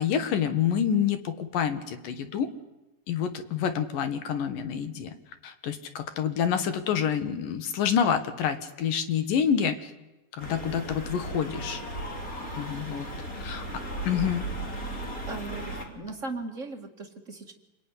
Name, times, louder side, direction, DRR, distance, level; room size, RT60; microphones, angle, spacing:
voice 1, 0.0-2.5 3.1-5.1 5.4-9.9 10.3-11.8 12.6-13.1 13.4-13.6 14.1-14.4 16.0-16.1, left 8 dB, 65° left, 10 dB, 2.8 m, -27 dB
sound 1, 10.4-15.9, right 1 dB, 20° left, 3.2 m, -36 dB
voice 2, 15.3-17.5, right 3 dB, 40° right, 3 dB, 1.0 m, -38 dB
28.0 x 21.5 x 9.8 m, 1.0 s
omnidirectional pair, 4.7 m